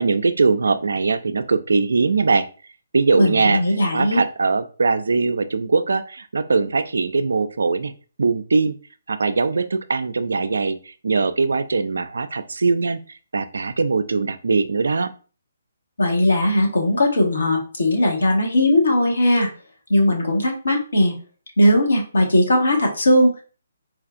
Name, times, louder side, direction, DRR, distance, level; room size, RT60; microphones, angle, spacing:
voice 1, 0.0-2.5 2.9-3.6 3.9-7.9 8.2-8.8 9.1-15.1, right 4 dB, 70° right, 12 dB, 0.3 m, -21 dB
voice 2, 3.2-4.2 16.0-19.5 19.9-21.1 21.6-23.4, left 1 dB, 75° left, 0 dB, 1.2 m, -18 dB
4.3 x 2.4 x 2.5 m, 0.37 s
figure-of-eight pair, 140°, 0 cm